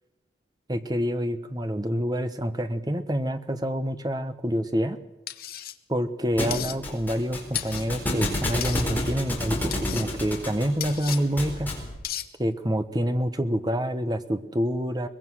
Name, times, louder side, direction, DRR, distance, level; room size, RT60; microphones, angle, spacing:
voice 1, 0.7-5.0 5.9-11.7 12.4-15.1, equal, 20° right, 9 dB, 1.2 m, -27 dB
sound 1, 5.3-5.7 6.5-6.8 7.5-7.9 8.6-8.9 9.7-10.1 10.8-11.2 12.0-12.3, left 12 dB, 50° left, 1.1 m, -34 dB
Thump thud, 6.4-11.9, left 1 dB, 10° left, 4.3 m, -30 dB
23.0 x 20.5 x 6.3 m, 1.0 s
head